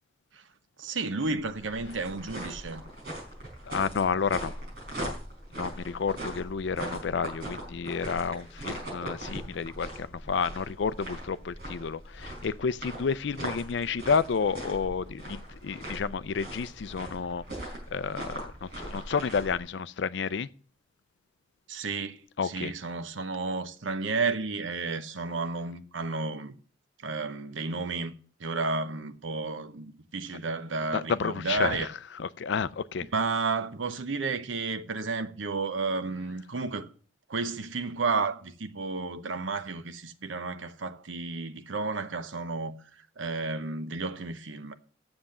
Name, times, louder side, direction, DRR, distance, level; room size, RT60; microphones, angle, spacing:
voice 1, 0.8-2.8 9.2-9.4 21.7-26.6 27.0-28.1 28.4-31.9 33.1-36.9 37.3-44.7, right 3 dB, 90° right, 0.8 m, -32 dB
sound 1, 1.3-19.6, right 1 dB, 55° right, 4.7 m, -40 dB
voice 2, 3.7-4.5 5.0-5.1 5.5-20.5 22.4-22.7 30.9-31.9 32.2-33.1, left 5 dB, 70° left, 0.4 m, -30 dB
7.7 x 7.0 x 7.1 m
head